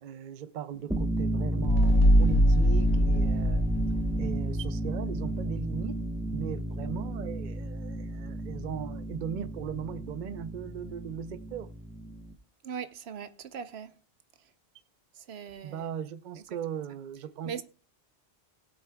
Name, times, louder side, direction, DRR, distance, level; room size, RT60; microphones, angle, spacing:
voice 1, 0.0-3.6 4.2-6.0 6.3-11.7 15.6-17.6, right 8 dB, 55° right, 0.7 m, -38 dB
sound 1, 0.8-12.3, right 1 dB, 5° right, 0.9 m, -32 dB
sound 2, 1.6-5.0, equal, 55° left, 0.9 m, -23 dB
voice 2, 12.6-13.9 15.3-15.8 17.4-17.6, right 7 dB, 85° right, 1.0 m, -39 dB
19.5 x 8.2 x 2.3 m
omnidirectional pair, 1.0 m